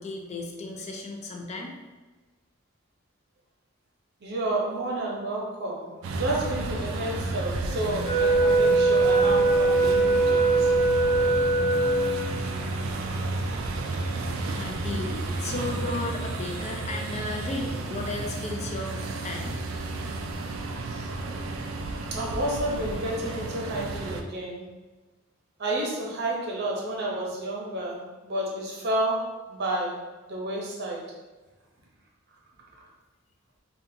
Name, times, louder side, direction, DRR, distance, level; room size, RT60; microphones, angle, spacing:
voice 1, 0.0-1.7 14.5-19.6, left 2 dB, 35° left, 1 dB, 0.4 m, -34 dB
voice 2, 4.2-10.7 20.8-21.1 22.1-24.6 25.6-30.0 30.3-31.1, right 1 dB, 55° right, -2 dB, 0.7 m, -31 dB
sound 1, 6.0-24.2, right 2 dB, 85° right, 0.4 m, -32 dB
Wind instrument woodwind instrument, 8.0-12.4, right 2 dB, 65° left, 0.9 m, -21 dB
3.7 x 2.3 x 2.7 m, 1.2 s
head